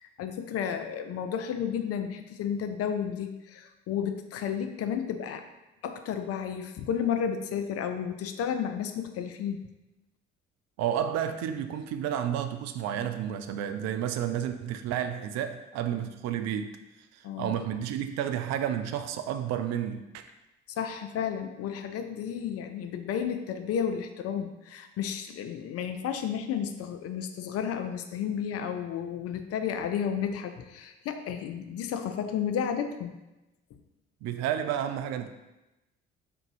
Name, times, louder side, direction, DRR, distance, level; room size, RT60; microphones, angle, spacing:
voice 1, 0.0-5.4 5.8-9.6 17.2-17.5 20.8-33.1, left 8 dB, 45° left, 7 dB, 0.5 m, -32 dB
voice 2, 10.8-16.7 17.1-20.3 34.2-35.3, right 9 dB, 50° right, 8 dB, 0.4 m, -31 dB
3.8 x 2.6 x 4.6 m, 0.99 s
figure-of-eight pair, 45°, 34 cm